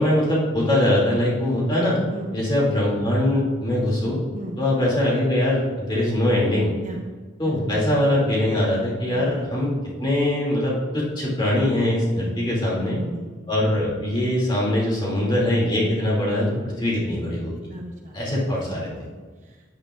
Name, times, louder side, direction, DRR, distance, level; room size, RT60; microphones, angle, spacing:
voice 1, 0.0-2.0 2.3-4.2 4.6-6.7 7.4-9.7 10.0-13.0 13.5-17.5 18.1-18.9, left 1 dB, 20° left, -5 dB, 2.5 m, -22 dB
voice 2, 12.7-13.5 17.7-18.2 19.1-19.6, right 1 dB, 35° right, 1 dB, 0.9 m, -36 dB
12.5 x 9.6 x 2.5 m, 1.4 s
head